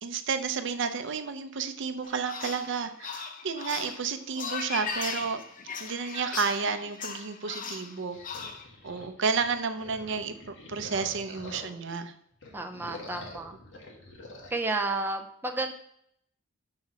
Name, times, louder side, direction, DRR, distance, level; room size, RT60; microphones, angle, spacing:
voice 1, 0.0-5.4 5.8-8.2 8.8-12.1, right 5 dB, 60° right, 9 dB, 0.6 m, -31 dB
sound 1, 2.0-8.7, left 5 dB, 40° left, 0.8 m, -38 dB
sound 2, 8.1-12.0 12.3-14.5, left 2 dB, 60° left, 1.5 m, -46 dB
voice 2, 12.5-13.5 14.5-15.7, right 2 dB, 10° right, 4 dB, 0.6 m, -31 dB
6.0 x 4.9 x 5.7 m, 0.70 s
head